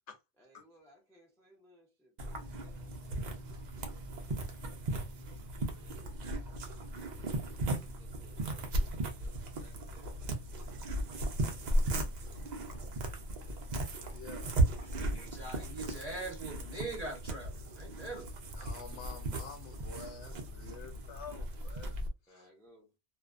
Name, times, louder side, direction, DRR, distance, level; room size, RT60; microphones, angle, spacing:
voice 1, 0.4-4.9 5.2-6.1 7.1-12.4 12.7-13.6 22.3-22.9, equal, 5° left, 0.3 m, -64 dB
sound 1, 2.2-22.1, right 1 dB, 90° right, 0.3 m, -36 dB
voice 2, 14.1-14.6 18.0-18.3 18.5-22.0 22.2-22.5, left 6 dB, 65° left, 0.8 m, -49 dB
voice 3, 14.9-18.3, right 2 dB, 40° right, 0.6 m, -42 dB
2.5 x 2.1 x 2.4 m
omnidirectional pair, 1.4 m